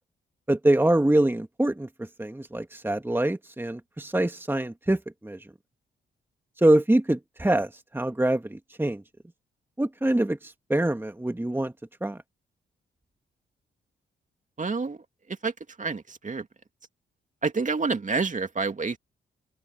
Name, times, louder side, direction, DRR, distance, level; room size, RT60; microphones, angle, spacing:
voice 1, 0.5-5.4 6.6-9.0 9.8-11.7 12.0-12.2, right 1 dB, 10° right, 2.0 m, -25 dB
voice 2, 14.6-15.0 15.4-15.5 15.8-16.4 17.4-19.0, right 4 dB, 35° right, 2.6 m, -28 dB
open air
supercardioid pair, 50°, 21 cm